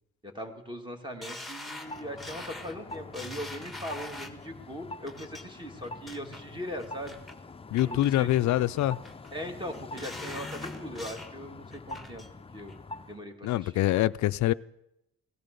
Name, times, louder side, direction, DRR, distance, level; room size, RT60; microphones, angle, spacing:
voice 1, 0.2-7.2 7.8-8.3 9.3-12.2 12.5-12.8 13.1-14.0, equal, 15° right, 2.4 m, -40 dB
sound 1, 1.2-4.5 5.1-5.4 5.8-6.4 6.8-7.3 7.8-8.4 8.8-9.3 9.7-11.3 11.7-12.3 12.7-12.8, left 2 dB, ahead, 1.6 m, -43 dB
sound 2, 1.8-13.2, left 3 dB, 20° left, 0.6 m, -44 dB
voice 2, 7.7-9.0 13.4-14.5, left 14 dB, 70° left, 0.5 m, -25 dB
17.0 x 12.5 x 6.8 m
cardioid pair, 90°, 30 cm